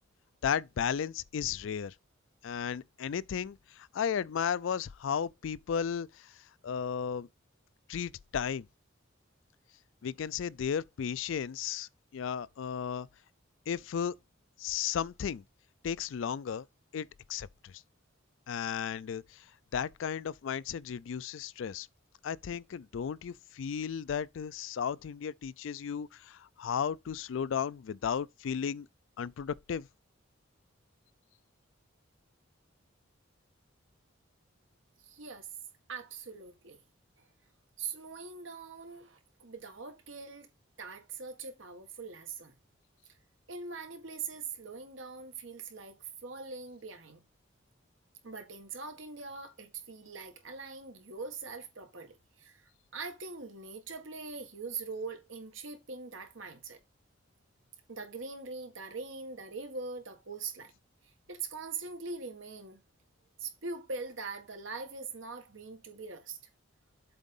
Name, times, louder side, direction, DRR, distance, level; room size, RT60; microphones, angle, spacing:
voice 1, 0.4-1.9 2.4-6.3 6.6-7.3 7.9-8.7 10.0-13.1 13.7-14.1 14.6-15.4 15.8-16.7 16.9-17.8 18.5-19.4 19.7-21.9 22.2-28.9 29.2-29.9, left 7 dB, 70° left, 0.4 m, -34 dB
voice 2, 35.0-35.5 35.9-36.8 37.8-40.5 40.8-42.5 43.5-47.2 48.2-52.6 52.9-56.8 57.9-60.7 61.3-62.8 63.4-66.4, right 4 dB, 70° right, 1.7 m, -42 dB
7.9 x 3.6 x 5.3 m
head